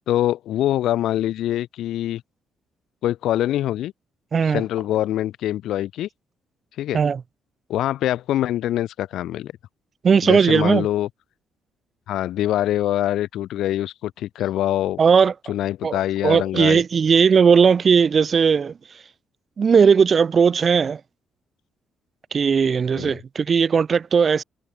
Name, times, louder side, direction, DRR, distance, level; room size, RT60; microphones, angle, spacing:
voice 1, 0.1-2.2 3.0-3.9 4.5-6.1 6.8-7.0 7.7-9.5 10.2-11.1 12.1-15.0 15.5-16.8 22.9-23.2, left 13 dB, 80° left, 2.4 m, -24 dB
voice 2, 4.3-4.6 6.9-7.2 10.0-10.9 15.0-15.3 15.8-18.8 19.6-21.0 22.3-24.4, right 6 dB, 45° right, 1.4 m, -17 dB
cardioid pair, 90°, 0 cm